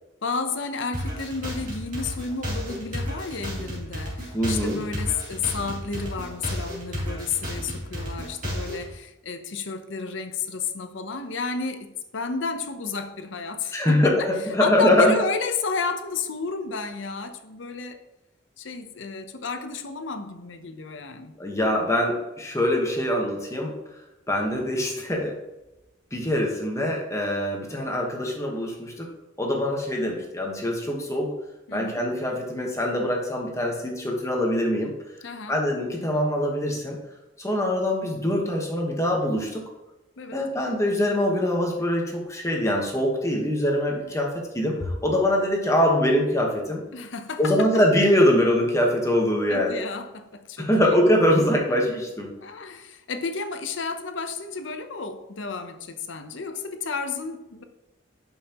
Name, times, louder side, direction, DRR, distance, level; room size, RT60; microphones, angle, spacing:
voice 1, 0.2-14.3 14.6-18.0 18.6-21.3 31.7-32.0 35.2-35.6 40.2-40.5 46.9-47.7 49.5-51.0 52.4-57.6, left 4 dB, 75° left, 0.8 m, -32 dB
sound 1, 0.9-8.9, equal, 40° right, 2.7 m, -32 dB
voice 2, 4.3-4.8 13.7-15.1 21.4-23.8 24.3-25.3 26.1-29.1 29.4-31.3 31.7-34.9 35.5-37.0 37.4-39.6 40.3-46.8 47.4-49.8 50.6-52.3, left 1 dB, 15° left, 1.2 m, -23 dB
11.0 x 5.6 x 3.0 m
head